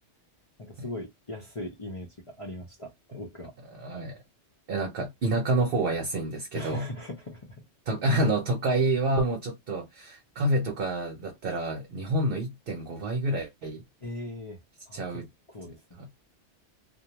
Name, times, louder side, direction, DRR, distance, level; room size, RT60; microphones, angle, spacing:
voice 1, 0.6-3.5 3.9-4.1 6.5-7.6 14.0-14.6 14.9-16.0, left 1 dB, 35° left, 0.6 m, -40 dB
voice 2, 3.7-4.2 4.7-6.9 7.9-13.8 14.9-15.2 16.0-16.1, right 2 dB, 55° right, 0.8 m, -28 dB
2.4 x 2.2 x 2.9 m
omnidirectional pair, 1.2 m